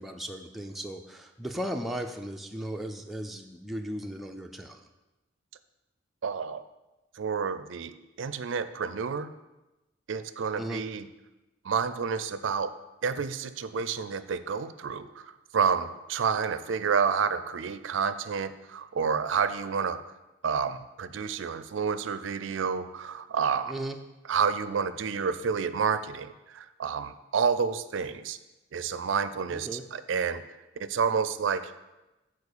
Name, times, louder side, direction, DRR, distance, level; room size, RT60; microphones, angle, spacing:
voice 1, 0.0-4.8 10.6-10.8 23.7-24.0 29.5-29.8, right 1 dB, ahead, 2 dB, 0.4 m, -36 dB
voice 2, 6.2-6.6 7.2-9.3 10.1-11.1 11.6-12.7 13.0-15.2 15.5-20.0 20.4-23.7 24.3-28.4 28.7-30.4 30.8-31.7, right 6 dB, 65° right, 13 dB, 0.4 m, -29 dB
7.2 x 4.3 x 6.7 m, 1.0 s
head